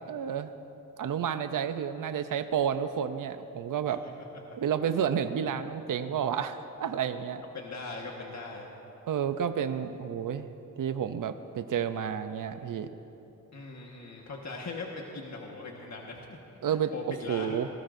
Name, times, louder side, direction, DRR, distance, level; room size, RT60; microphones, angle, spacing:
voice 1, 0.1-0.5 1.0-4.0 4.6-7.4 9.1-12.9 16.6-16.9 17.3-17.7, right 8 dB, 75° right, 9 dB, 0.6 m, -30 dB
voice 2, 7.5-8.7 13.5-17.6, left 3 dB, 55° left, -1 dB, 1.5 m, -40 dB
26.5 x 18.5 x 2.6 m, 3.0 s
wide cardioid pair, 105°, 33 cm